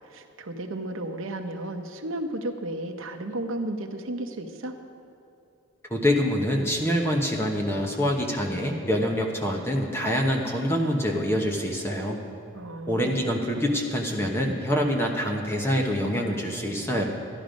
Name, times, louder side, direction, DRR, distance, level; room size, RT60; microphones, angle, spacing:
voice 1, 0.1-4.7 12.5-13.3, right 1 dB, 70° right, 5 dB, 0.8 m, -33 dB
voice 2, 5.9-12.2 12.9-17.0, equal, 10° left, 0 dB, 1.0 m, -25 dB
13.0 x 11.0 x 5.2 m, 2.8 s
head